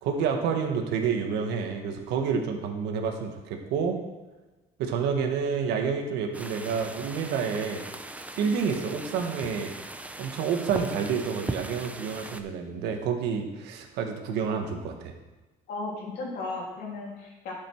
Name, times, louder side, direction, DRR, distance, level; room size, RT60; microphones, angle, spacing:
voice 1, 0.0-4.0 4.8-7.8 8.4-9.7 10.2-15.1, right 6 dB, 90° right, 4 dB, 1.5 m, -29 dB
sound 1, 6.3-12.4, right 2 dB, 10° right, 0.7 m, -39 dB
voice 2, 15.7-17.5, left 3 dB, 75° left, -2 dB, 3.3 m, -35 dB
12.0 x 6.9 x 4.6 m, 1.2 s
cardioid pair, 110°, 17 cm